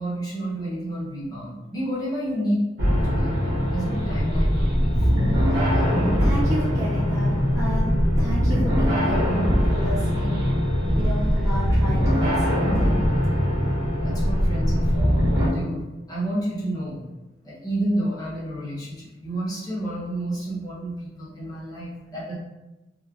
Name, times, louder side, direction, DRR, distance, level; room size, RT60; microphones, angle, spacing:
voice 1, 0.0-2.6 3.0-5.1 10.8-11.2 14.0-17.0 17.4-22.3, right 1 dB, 20° left, -8 dB, 0.7 m, -30 dB
sound 1, 2.8-15.5, equal, 75° right, 0.8 m, -21 dB
voice 2, 5.6-9.3 9.6-10.5 10.9-13.0, equal, 20° right, -11 dB, 1.2 m, -32 dB
3.1 x 2.0 x 2.3 m, 1.1 s
head